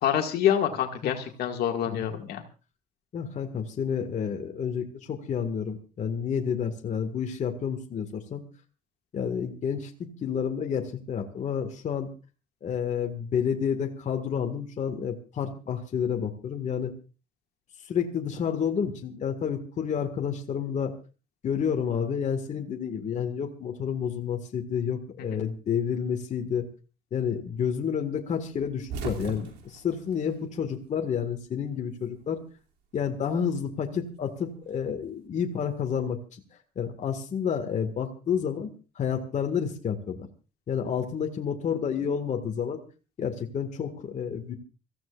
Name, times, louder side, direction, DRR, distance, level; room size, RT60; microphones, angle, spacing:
voice 1, 0.0-2.4 25.2-25.4, left 9 dB, 70° left, 4 dB, 2.0 m, -27 dB
voice 2, 1.9-2.2 3.1-8.4 9.1-12.1 12.6-16.9 17.9-21.0 21.4-26.7 27.1-32.4 32.9-36.2 36.8-38.7 39.0-40.3 40.7-42.8 43.2-44.6, left 7 dB, 45° left, 4 dB, 1.8 m, -30 dB
sound 1, 28.6-31.1 31.4-32.5 33.7-35.1, right 5 dB, 90° right, 2.7 m, -40 dB
25.5 x 15.0 x 2.5 m, 0.33 s
cardioid pair, 110°, 17 cm